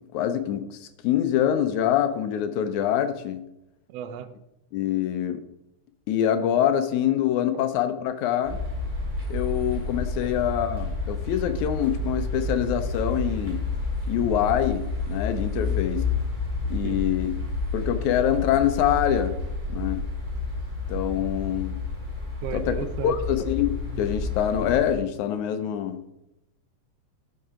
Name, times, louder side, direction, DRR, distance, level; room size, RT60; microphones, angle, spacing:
voice 1, 0.1-3.4 4.7-5.4 6.1-8.6 9.3-13.6 14.1-16.0 16.7-17.3 17.7-19.4 19.7-20.0 20.9-21.8 22.5-22.8 23.0-26.0, left 10 dB, 80° left, 8 dB, 2.1 m, -25 dB
voice 2, 3.9-4.3 7.5-7.6 10.2-10.3 15.6-15.8 16.8-17.0 22.4-23.2, right 9 dB, 85° right, 10 dB, 1.4 m, -35 dB
sound 1, 8.4-25.0, left 3 dB, 15° right, 2.5 m, -30 dB
12.0 x 5.7 x 3.7 m, 0.88 s
omnidirectional pair, 3.5 m